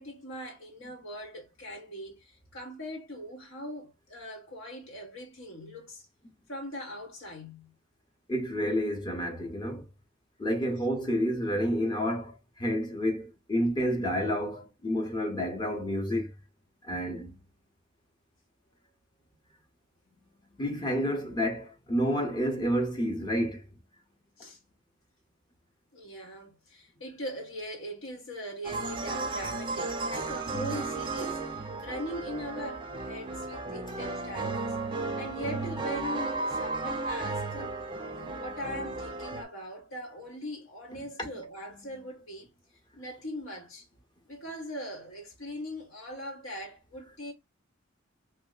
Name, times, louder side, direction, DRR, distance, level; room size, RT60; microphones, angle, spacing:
voice 1, 0.0-6.0 6.5-7.7 24.4-24.6 25.9-34.8 35.2-37.8 38.2-42.5 43.0-43.9 44.2-47.3, equal, 80° left, 1.4 m, -41 dB
voice 2, 8.3-9.9 10.4-16.3 16.8-17.4 20.6-23.6 38.1-38.4, equal, 20° left, 0.8 m, -29 dB
sound 1, 28.6-39.4, right 3 dB, 25° right, 0.5 m, -34 dB
3.0 x 2.1 x 3.8 m
head